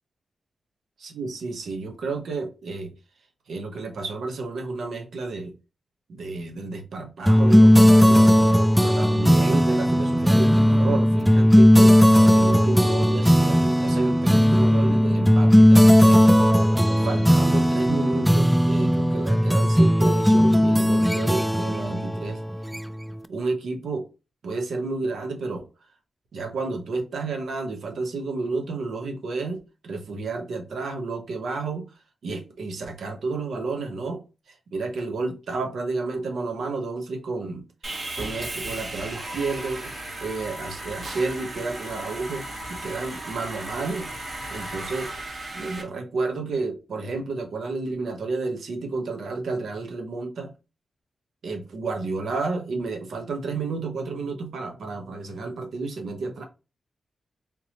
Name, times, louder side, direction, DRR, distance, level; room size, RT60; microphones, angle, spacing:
voice 1, 1.0-2.9 3.5-5.5 6.1-8.3 8.8-12.0 12.2-16.2 17.0-22.4 23.3-24.1 24.4-25.7 26.3-31.9 32.2-34.2 34.5-37.7 38.1-44.1 44.5-45.3 45.5-50.5 51.4-56.4, right 3 dB, 85° right, 0.9 m, -31 dB
sound 1, 7.3-23.1, equal, ahead, 0.3 m, -17 dB
Sawing, 37.8-45.8, right 1 dB, 50° right, 1.3 m, -35 dB
3.7 x 2.8 x 2.8 m
cardioid pair, 80°, 0 cm